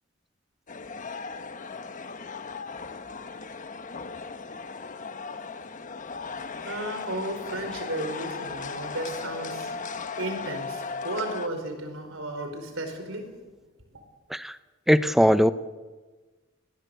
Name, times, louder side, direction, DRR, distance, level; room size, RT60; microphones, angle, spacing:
sound 1, 0.7-11.5, left 4 dB, 40° left, 1.1 m, -37 dB
voice 1, 6.1-13.3 13.9-14.0, right 1 dB, 75° right, 6 dB, 4.9 m, -34 dB
voice 2, 14.9-15.5, equal, ahead, 13 dB, 0.6 m, -20 dB
20.5 x 18.5 x 8.3 m, 1.3 s
head